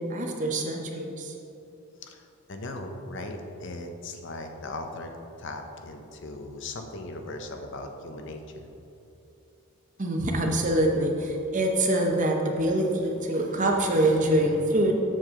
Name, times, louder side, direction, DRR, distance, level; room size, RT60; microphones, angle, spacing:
voice 1, 0.0-1.3 10.0-14.9, right 1 dB, 35° right, 2 dB, 0.8 m, -25 dB
voice 2, 2.0-5.1 5.4-8.7, left 2 dB, 55° left, 5 dB, 0.7 m, -38 dB
7.7 x 6.7 x 3.7 m, 2.9 s
head